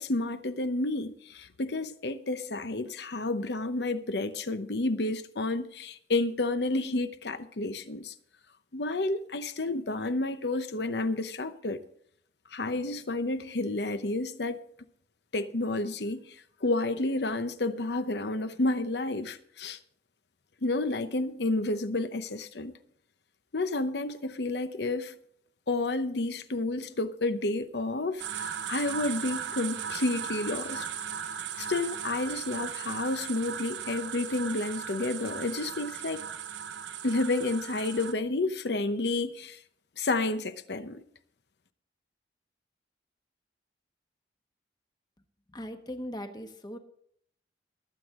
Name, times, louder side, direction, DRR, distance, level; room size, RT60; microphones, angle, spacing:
voice 1, 0.0-8.1 8.7-11.8 12.5-14.6 15.3-16.4 16.6-19.8 20.6-22.7 23.5-25.1 25.7-30.9 31.6-36.2 37.0-39.6 40.0-41.0, left 2 dB, 65° left, 0.9 m, -30 dB
sound 1, 28.2-38.1, right 8 dB, 85° right, 0.9 m, -37 dB
voice 2, 45.5-46.8, equal, 25° left, 1.2 m, -39 dB
21.5 x 8.1 x 3.7 m
head